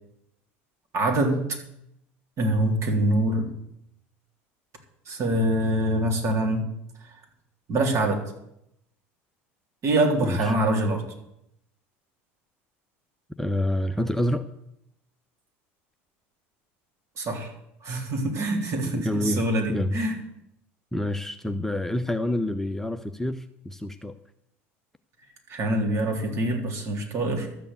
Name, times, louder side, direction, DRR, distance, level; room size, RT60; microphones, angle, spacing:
voice 1, 0.9-1.6 2.4-3.5 5.1-6.6 7.7-8.2 9.8-11.0 17.2-17.5 17.8-20.2 25.5-27.5, right 1 dB, 45° right, 2 dB, 3.6 m, -24 dB
voice 2, 13.4-14.5 18.9-19.4 19.7-20.0 20.9-24.1, left 1 dB, 5° left, 7 dB, 0.7 m, -27 dB
12.5 x 7.0 x 8.3 m, 0.80 s
hypercardioid pair, 85°, 7 cm